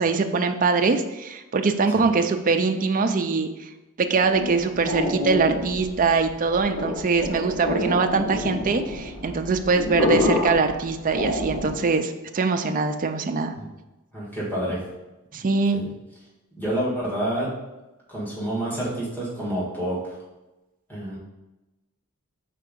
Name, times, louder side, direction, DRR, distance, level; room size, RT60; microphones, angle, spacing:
voice 1, 0.0-3.5 4.0-13.5 15.3-15.8, right 4 dB, 40° right, 6 dB, 0.4 m, -23 dB
sound 1, 4.1-11.9, left 1 dB, 85° left, 1.8 m, -28 dB
voice 2, 14.1-14.8 15.3-15.4 15.7-15.9 16.6-17.5 18.1-20.2 20.9-21.2, right 1 dB, 10° left, -7 dB, 1.8 m, -28 dB
4.6 x 4.2 x 5.2 m, 1.0 s
head